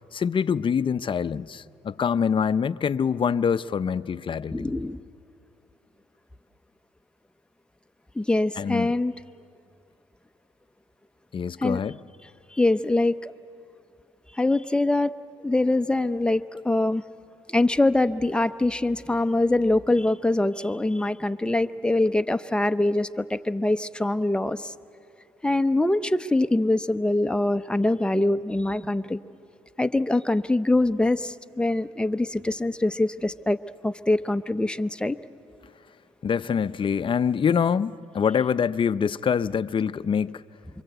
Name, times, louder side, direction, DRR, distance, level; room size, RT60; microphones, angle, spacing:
voice 1, 0.1-4.7 8.6-8.9 11.3-12.0 36.2-40.4, left 7 dB, 40° left, 0.6 m, -25 dB
voice 2, 4.5-5.0 8.1-9.1 11.6-11.8 12.5-13.3 14.3-15.1 15.4-17.0 17.5-24.7 25.4-29.2 29.8-33.6 33.8-35.2, left 2 dB, 5° left, 0.8 m, -24 dB
27.0 x 24.0 x 8.0 m
cardioid pair, 75°, 13 cm